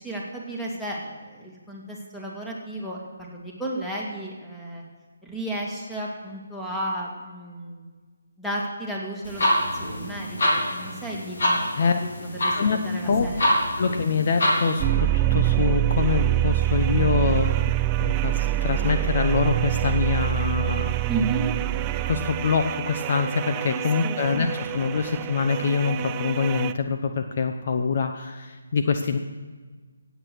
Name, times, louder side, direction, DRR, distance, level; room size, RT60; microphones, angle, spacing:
voice 1, 0.0-4.8 5.2-7.9 8.4-9.5 9.9-12.1 12.4-13.4 21.1-21.5 23.7-24.4, right 2 dB, 5° left, -3 dB, 2.2 m, -33 dB
sound 1, 9.2-14.8, equal, 65° left, 3.8 m, -26 dB
voice 2, 13.8-17.7 18.0-20.9 22.1-29.2, left 5 dB, 45° left, 6 dB, 0.8 m, -25 dB
sound 2, 14.8-26.7, right 14 dB, 20° right, 0.3 m, -25 dB
17.0 x 8.2 x 6.3 m, 1.4 s
figure-of-eight pair, 155°, 0 cm